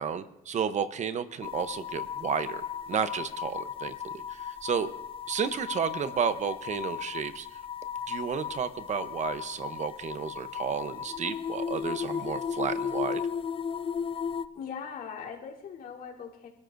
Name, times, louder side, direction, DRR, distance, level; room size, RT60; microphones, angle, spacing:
voice 1, 0.0-4.9 5.3-7.5 8.1-13.2, right 7 dB, 45° right, 11 dB, 0.9 m, -32 dB
sound 1, 1.4-14.5, left 7 dB, 30° left, 0.5 m, -35 dB
voice 2, 14.5-16.5, left 7 dB, 60° left, -3 dB, 3.5 m, -40 dB
27.0 x 13.0 x 2.6 m, 0.84 s
cardioid pair, 110°, 17 cm